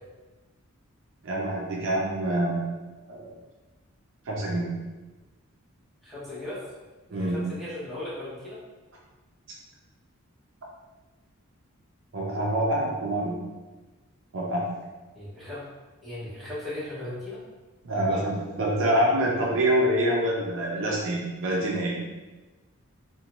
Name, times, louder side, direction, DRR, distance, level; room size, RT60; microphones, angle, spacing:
voice 1, 1.2-2.7 3.1-3.4 4.3-4.7 7.1-7.4 12.1-13.4 14.3-14.7 17.8-22.0, right 1 dB, 55° right, -4 dB, 0.5 m, -26 dB
voice 2, 6.0-6.6 7.1-8.6 15.1-15.7 16.0-17.4 18.1-18.3, left 1 dB, ahead, -11 dB, 0.8 m, -37 dB
2.5 x 2.1 x 2.9 m, 1.2 s
head